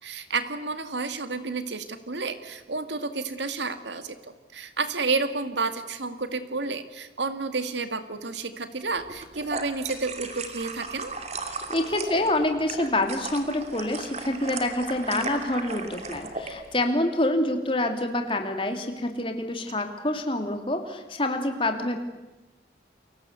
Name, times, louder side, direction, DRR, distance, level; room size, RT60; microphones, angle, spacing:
voice 1, 0.0-11.1, right 4 dB, 80° right, 10 dB, 2.1 m, -31 dB
sound 1, 9.1-16.5, right 3 dB, 35° right, 2.7 m, -36 dB
voice 2, 11.7-22.0, left 1 dB, 30° left, 5 dB, 2.9 m, -27 dB
30.0 x 23.0 x 8.2 m, 1.0 s
head